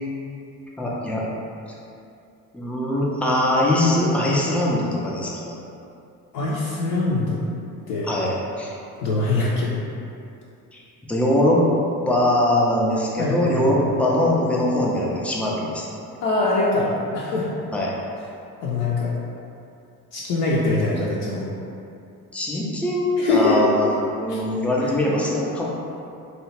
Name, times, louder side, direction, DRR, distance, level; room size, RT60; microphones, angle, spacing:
voice 1, 0.8-1.2 2.5-5.6 8.0-8.7 10.7-10.8 11.1-11.6 12.1-15.9 17.7-18.0 22.3-23.9 24.2-25.6, left 1 dB, 5° left, -5 dB, 0.4 m, -22 dB
voice 2, 6.3-7.4 7.9-8.1 9.0-9.7 13.2-13.9 16.2-17.5 18.6-19.1 20.1-21.5 23.2-23.6 24.3-24.4 24.8-24.9, left 3 dB, 55° left, -6 dB, 0.6 m, -23 dB
2.7 x 2.3 x 3.1 m, 2.6 s
figure-of-eight pair, 50°, 48 cm